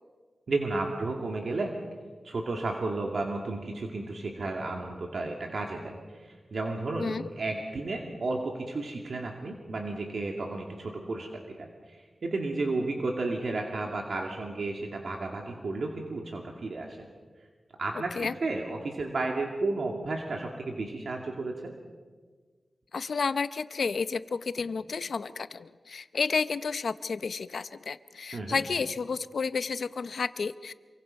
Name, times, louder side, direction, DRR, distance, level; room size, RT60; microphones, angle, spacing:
voice 1, 0.5-1.7 2.2-5.9 6.2-17.1 17.8-21.7 28.3-28.6, right 2 dB, 70° right, 1 dB, 2.4 m, -33 dB
voice 2, 22.9-30.7, left 5 dB, 75° left, 13 dB, 0.8 m, -31 dB
27.0 x 24.0 x 5.5 m, 1.5 s
wide cardioid pair, 95°, 0 cm